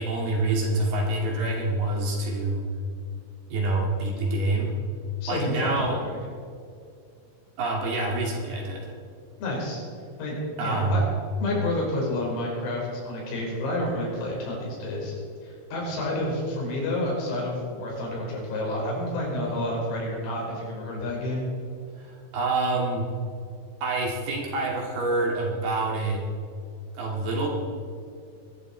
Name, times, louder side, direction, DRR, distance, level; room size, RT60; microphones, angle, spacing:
voice 1, 0.0-2.6 3.5-4.7 5.3-6.0 7.6-8.9 10.6-11.1 22.0-23.1 23.8-26.2 26.9-27.5, right 2 dB, 55° right, -1 dB, 3.8 m, -26 dB
voice 2, 5.2-6.0 9.4-9.8 10.2-11.0 11.4-15.1 15.4-21.5, left 1 dB, 90° left, -3 dB, 7.5 m, -29 dB
22.5 x 12.0 x 4.5 m, 2.4 s
omnidirectional pair, 5.9 m